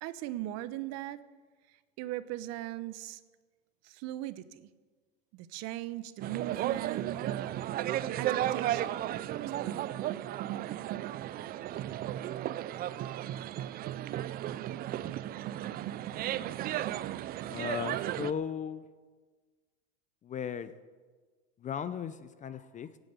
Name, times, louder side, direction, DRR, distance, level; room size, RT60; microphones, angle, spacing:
voice 1, 0.0-1.2 2.0-3.2 3.8-4.7 5.3-7.6 8.2-8.9 9.4-9.9, right 14 dB, 50° right, 14 dB, 1.0 m, -39 dB
sound 1, 6.2-18.3, right 12 dB, 30° right, 0.4 m, -34 dB
voice 2, 17.5-18.9 20.2-20.7 21.6-22.9, left 8 dB, 20° left, 14 dB, 0.5 m, -36 dB
17.0 x 9.0 x 8.0 m, 1.4 s
supercardioid pair, 125°, 34 cm